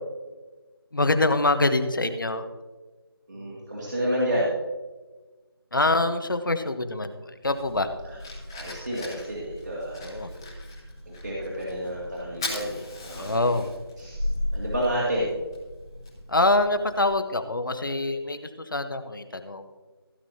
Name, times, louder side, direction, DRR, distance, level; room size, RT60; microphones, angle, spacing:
voice 1, 0.9-2.5 5.7-7.9 10.0-10.3 13.2-13.7 16.3-19.7, left 2 dB, 55° left, 8 dB, 1.1 m, -25 dB
voice 2, 3.3-4.5 8.0-8.2 8.5-10.5 11.1-13.6 14.0-15.3, equal, 50° right, -6 dB, 2.4 m, -30 dB
Fire, 7.4-17.1, left 1 dB, 10° left, 1.3 m, -37 dB
16.0 x 8.7 x 2.8 m, 1.3 s
figure-of-eight pair, 170°, 13 cm